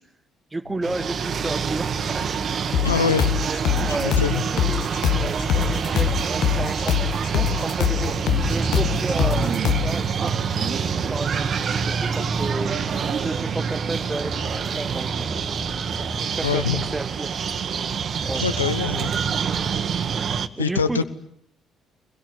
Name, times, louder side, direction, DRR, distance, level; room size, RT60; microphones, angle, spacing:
voice 1, 0.5-2.3 2.8-2.9 3.4-8.1 8.5-10.4 10.9-12.8 13.1-15.5 16.3-17.3 18.2-18.5 19.5-19.7 20.6-21.0, right 2 dB, 20° right, 13 dB, 1.9 m, -32 dB
sound 1, 0.8-20.5, right 6 dB, 50° right, 1.6 m, -26 dB
sound 2, 2.7-9.9, left 11 dB, 60° left, 1.2 m, -23 dB
voice 2, 2.8-3.4 4.0-4.3 5.5-5.7 16.4-16.8 18.4-19.1 20.6-21.0, left 5 dB, 90° left, 14 dB, 1.0 m, -24 dB
25.0 x 21.5 x 9.8 m, 0.70 s
figure-of-eight pair, 50°, 0 cm